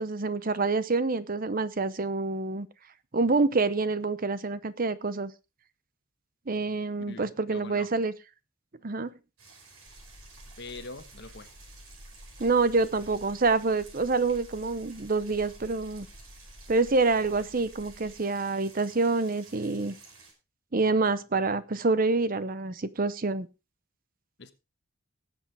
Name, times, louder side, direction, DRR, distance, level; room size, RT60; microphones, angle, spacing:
voice 1, 0.0-2.7 3.1-5.3 6.5-8.1 8.8-9.1 12.4-16.1 16.7-20.0 20.7-23.5, right 3 dB, 40° right, 0.7 m, -27 dB
voice 2, 7.1-7.9 10.6-11.5 24.4-24.5, left 3 dB, 55° left, 1.2 m, -43 dB
sound 1, 9.4-20.3, right 4 dB, 85° right, 5.3 m, -53 dB
sound 2, 9.9-18.1, equal, 20° right, 2.6 m, -51 dB
19.0 x 8.0 x 3.4 m
head